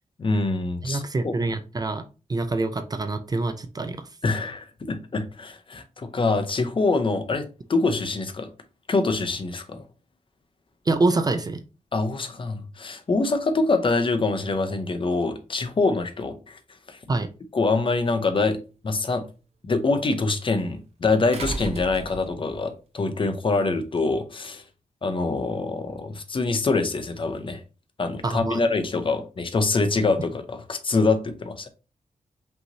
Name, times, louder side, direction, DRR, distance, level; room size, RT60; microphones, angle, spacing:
voice 1, 0.2-1.3 4.2-8.5 8.9-9.8 11.9-16.6 16.9-17.0 17.5-19.2 19.7-24.6 25.0-27.6 28.0-31.7, left 3 dB, 40° left, 0.7 m, -25 dB
voice 2, 0.8-4.1 10.9-11.6 17.1-17.3 28.2-28.6, right 2 dB, 30° right, 0.4 m, -26 dB
sound 1, 18.1-18.2 21.3-22.6 24.0-24.1, right 3 dB, 55° right, 0.8 m, -33 dB
5.4 x 3.0 x 2.7 m
wide cardioid pair, 115°, 13 cm